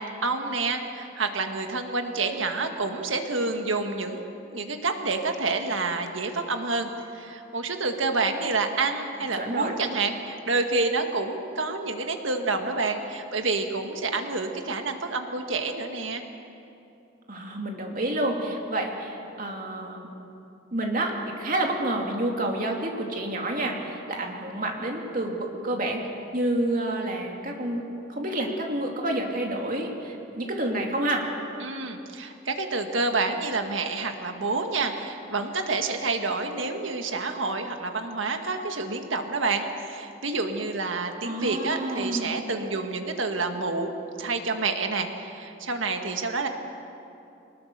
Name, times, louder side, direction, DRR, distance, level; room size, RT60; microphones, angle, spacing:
voice 1, 0.0-4.2 4.5-16.2 31.6-43.9 44.2-46.5, right 3 dB, 75° right, 5 dB, 1.8 m, -28 dB
voice 2, 9.3-9.7 17.3-20.1 20.7-21.1 21.4-26.0 26.3-27.8 28.1-31.2 41.2-42.5, right 1 dB, 45° right, 1 dB, 2.7 m, -29 dB
24.0 x 19.5 x 6.8 m, 2.8 s
head